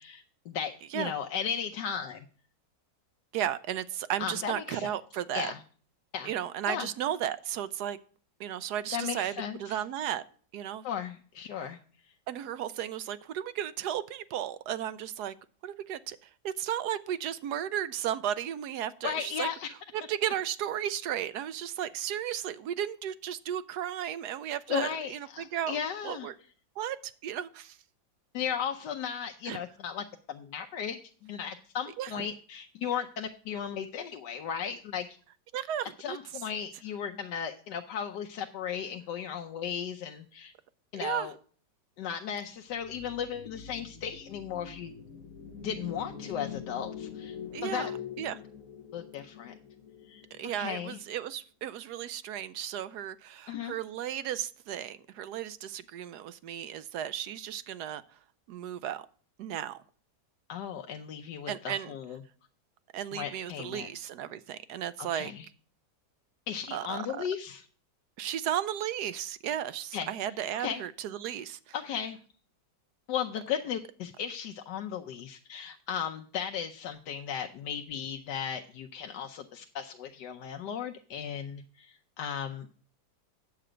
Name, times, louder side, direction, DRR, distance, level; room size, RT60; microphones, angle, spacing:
voice 1, 0.0-2.3 4.2-4.9 5.3-5.6 6.1-6.3 6.7-6.9 8.9-9.8 10.8-11.8 12.0-12.1 19.0-19.7 24.7-26.3 28.3-35.2 35.8-40.5 40.9-41.3 42.0-44.9 45.6-47.4 47.6-47.9 48.9-49.6 50.0-50.2 50.6-51.0 53.5-53.8 60.5-62.2 63.1-63.9 65.0-65.5 66.5-67.6 69.9-70.1 70.5-70.8 71.7-72.2 73.1-82.7, left 8 dB, 75° left, 1.3 m, -36 dB
voice 2, 3.3-5.5 6.2-8.0 8.4-10.2 10.5-10.8 12.3-15.3 15.6-19.5 19.9-25.8 26.0-26.3 26.8-27.8 29.5-29.6 32.0-32.1 35.5-36.2 41.0-41.3 47.5-47.9 48.2-48.4 50.3-58.2 58.5-59.1 59.4-59.8 61.5-61.9 62.9-65.3 66.7-67.2 68.2-71.7, right 10 dB, 75° right, 1.1 m, -34 dB
sound 1, 42.7-51.0, left 8 dB, 55° left, 1.2 m, -44 dB
9.7 x 7.8 x 5.0 m
omnidirectional pair, 1.9 m